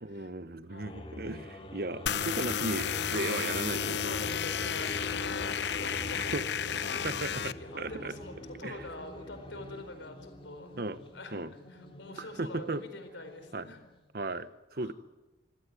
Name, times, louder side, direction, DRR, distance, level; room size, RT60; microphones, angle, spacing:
voice 1, 0.0-4.2 6.3-6.5 7.0-8.1 8.6-8.8 10.8-11.0 11.3-11.5 12.2-12.8 13.5-13.7 14.1-14.9, right 2 dB, 55° right, 14 dB, 1.0 m, -36 dB
voice 2, 0.7-1.0 2.0-2.4 3.9-6.9 7.2-10.8 11.1-11.4 11.7-13.8 14.7-14.9, left 2 dB, 90° left, 8 dB, 4.5 m, -46 dB
sound 1, 0.7-14.0, left 1 dB, 30° left, 3.1 m, -45 dB
sound 2, 2.1-7.5, left 8 dB, 70° left, 0.7 m, -32 dB
25.5 x 16.5 x 9.4 m, 1.1 s
head